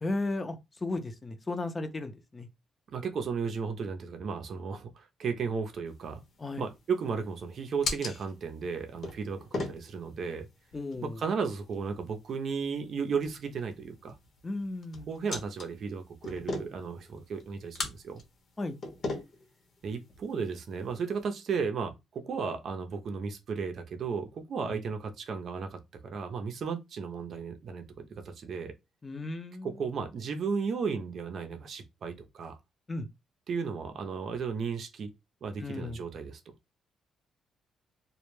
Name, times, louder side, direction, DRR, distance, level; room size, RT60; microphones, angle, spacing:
voice 1, 0.0-2.5 6.4-6.6 10.7-11.2 14.4-15.1 18.6-18.8 24.6-24.8 29.0-29.7 32.9-33.1 35.6-36.0, left 2 dB, 25° left, 0.5 m, -35 dB
voice 2, 2.9-6.2 6.6-10.5 11.0-14.2 15.1-18.2 19.8-28.7 29.6-32.6 33.5-35.1 35.4-36.4, right 5 dB, 60° right, 0.5 m, -34 dB
sound 1, 5.9-21.2, left 3 dB, 55° left, 0.8 m, -42 dB
2.2 x 2.1 x 3.1 m
cardioid pair, 90°, 0 cm